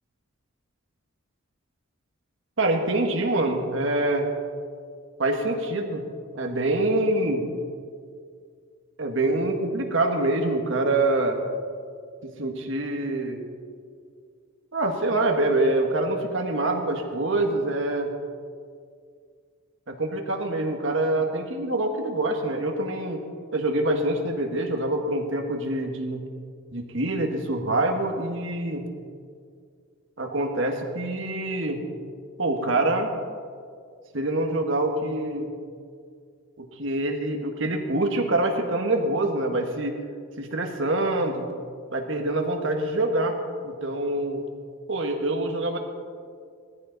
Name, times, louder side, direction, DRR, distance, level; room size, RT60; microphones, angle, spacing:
voice 1, 2.6-4.3 5.2-6.0 6.3-7.4 9.0-11.4 12.2-13.4 14.7-18.1 19.9-23.2 23.5-26.2 26.7-28.8 30.2-31.8 32.4-33.1 34.1-35.5 36.6-40.0 40.4-41.5 41.9-43.4 43.6-44.4 44.9-45.8, right 2 dB, 60° right, 3 dB, 1.5 m, -25 dB
18.0 x 14.0 x 4.0 m, 2.1 s
head